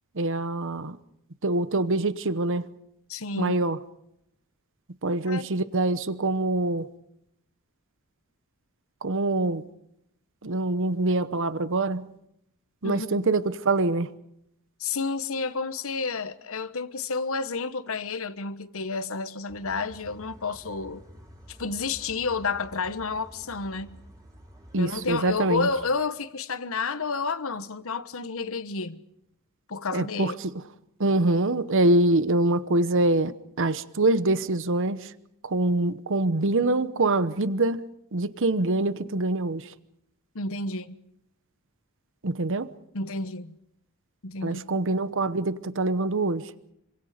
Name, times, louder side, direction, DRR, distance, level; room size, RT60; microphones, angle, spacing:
voice 1, 0.2-1.0 1.4-2.7 3.4-3.8 5.0-6.9 9.0-9.6 10.4-12.1 12.8-14.1 24.7-25.7 29.9-30.5 31.0-35.1 35.4-37.8 38.1-39.7 42.2-42.7 44.4-46.5, right 2 dB, 60° right, 1.0 m, -25 dB
voice 2, 3.1-3.6 5.2-5.4 12.8-13.1 14.8-21.0 21.5-24.0 24.8-29.0 29.7-30.3 40.3-41.0 42.9-43.5 44.2-44.7, left 4 dB, 65° left, 1.2 m, -30 dB
sound 1, 19.5-25.9, equal, 15° right, 5.7 m, -50 dB
27.0 x 25.5 x 5.1 m
head